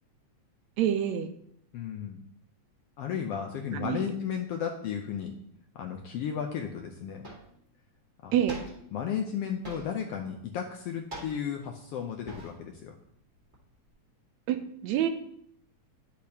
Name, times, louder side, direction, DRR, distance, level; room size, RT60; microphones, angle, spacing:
voice 1, 0.8-1.3 3.7-4.2 8.3-8.6 14.5-15.1, right 10 dB, 75° right, 8 dB, 1.9 m, -27 dB
voice 2, 1.7-2.2 3.0-5.3 5.7-7.3 8.2-8.4 8.9-13.0, left 8 dB, 75° left, 3 dB, 1.4 m, -34 dB
sound 1, 6.6-6.7 7.2-7.6 8.5-9.0 9.6-10.1 11.1-11.7 12.3-12.8 13.0-13.9, right 1 dB, 20° right, 1.6 m, -44 dB
10.0 x 8.4 x 2.8 m, 0.69 s
omnidirectional pair, 3.3 m